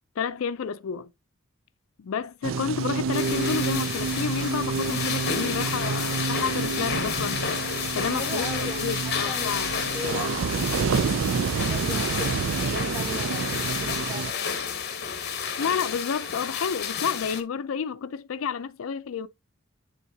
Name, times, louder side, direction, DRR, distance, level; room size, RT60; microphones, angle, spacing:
voice 1, 0.2-1.1 2.0-7.5 7.9-9.7 15.6-19.3, left 6 dB, 80° left, 0.4 m, -30 dB
sound 1, 2.4-14.3, right 5 dB, 65° right, 0.4 m, -29 dB
sound 2, 3.1-17.4, left 7 dB, 50° left, 1.1 m, -31 dB
voice 2, 8.0-12.3 12.5-14.6, left 1 dB, 10° right, 2.4 m, -39 dB
9.7 x 3.6 x 2.7 m
head